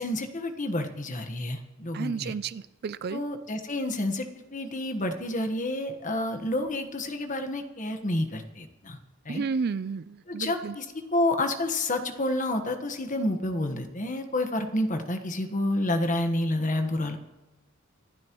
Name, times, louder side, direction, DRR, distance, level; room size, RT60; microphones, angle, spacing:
voice 1, 0.0-2.3 3.1-4.2 4.5-9.0 9.2-9.4 10.3-10.8 11.1-17.2, left 1 dB, 40° left, 6 dB, 1.4 m, -29 dB
voice 2, 1.9-3.2 9.3-10.8, right 5 dB, 50° right, 15 dB, 0.4 m, -32 dB
25.5 x 12.0 x 3.1 m, 1.1 s
head